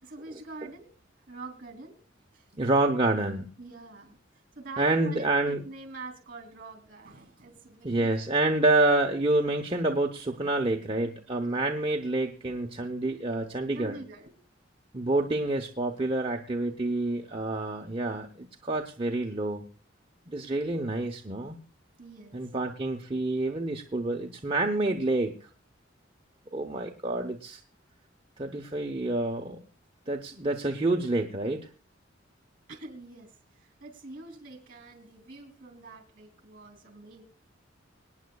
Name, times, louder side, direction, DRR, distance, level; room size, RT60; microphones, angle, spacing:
voice 1, 0.0-0.9 1.3-2.0 2.3-2.5 3.6-4.2 4.5-8.1 11.3-11.6 12.4-12.6 13.7-14.4 22.0-22.4 32.7-37.2, right 3 dB, 45° right, 8 dB, 2.9 m, -45 dB
voice 2, 2.5-3.5 4.8-5.6 7.8-14.0 14.9-19.6 20.3-21.6 22.3-25.4 26.5-27.6 28.4-29.6 30.1-31.7, right 2 dB, 30° right, 1 dB, 0.8 m, -28 dB
25.5 x 9.5 x 2.3 m, 0.34 s
head